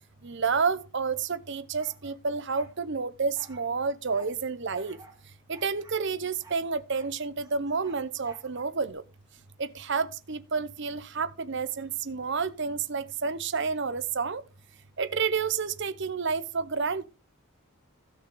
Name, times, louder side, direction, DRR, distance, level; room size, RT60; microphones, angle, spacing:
voice 1, 0.2-5.0 5.5-9.0 9.6-14.4 15.0-17.1, right 5 dB, 55° right, 0.8 m, -30 dB
sound 1, 1.8-2.8 3.3-4.3 4.7-5.2 5.5-7.1 7.4-8.9, right 3 dB, 15° right, 2.4 m, -54 dB
16.0 x 6.4 x 3.8 m
head